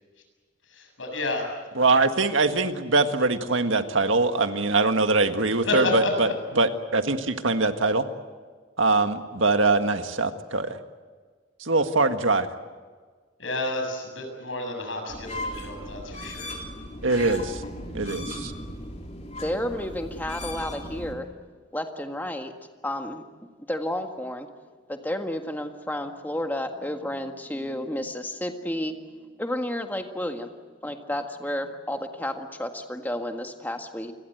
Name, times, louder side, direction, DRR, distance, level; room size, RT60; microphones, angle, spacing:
voice 1, 0.7-1.4 5.6-6.3 13.4-16.5, left 2 dB, 80° left, 4 dB, 7.6 m, -30 dB
voice 2, 1.8-6.3 6.6-8.1 8.8-10.8 11.7-12.5 17.0-17.6 17.9-18.5, right 3 dB, 80° right, 7 dB, 1.8 m, -23 dB
sound 1, 15.1-21.1, left 1 dB, 35° left, 3.6 m, -37 dB
voice 3, 19.4-21.3 21.7-22.5 22.8-23.2 23.7-24.5 24.9-28.9 29.4-30.5 30.8-34.1, left 1 dB, 10° left, 4 dB, 1.7 m, -31 dB
28.5 x 21.5 x 8.0 m, 1.5 s
head